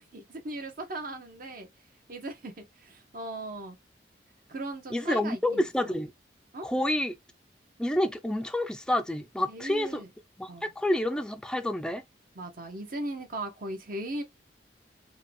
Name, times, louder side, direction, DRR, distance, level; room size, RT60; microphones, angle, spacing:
voice 1, 0.0-1.7 2.1-3.8 4.5-5.9 6.5-6.7 9.5-10.1 10.5-10.7 12.3-14.2, right 1 dB, 55° right, 1.0 m, -38 dB
voice 2, 4.9-6.1 6.6-7.2 7.8-10.0 10.4-12.0, left 1 dB, 5° left, 0.4 m, -28 dB
4.6 x 2.3 x 3.3 m
head